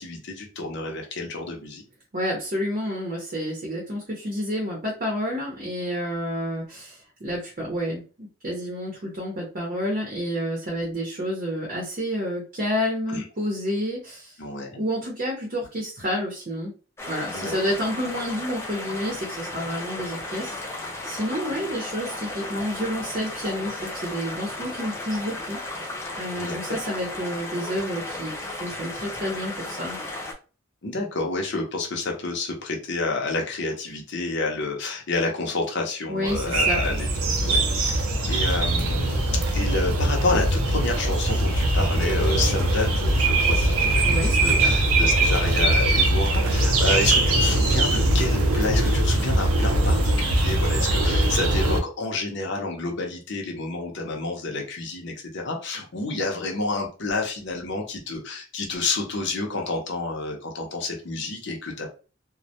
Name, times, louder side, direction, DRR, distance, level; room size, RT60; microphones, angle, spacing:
voice 1, 0.0-1.8 13.1-13.2 14.4-14.8 17.3-17.5 26.3-26.8 30.8-38.0 38.3-61.9, left 3 dB, 55° left, 1 dB, 0.6 m, -29 dB
voice 2, 2.1-14.3 14.8-16.7 17.1-25.9 26.2-30.0 36.1-36.8 44.0-44.7, equal, 40° right, -2 dB, 0.7 m, -29 dB
sound 1, 17.0-30.3, left 2 dB, 10° left, 0.4 m, -35 dB
sound 2, 36.3-51.8, right 1 dB, 90° right, 0.5 m, -21 dB
2.1 x 2.1 x 2.7 m, 0.35 s
head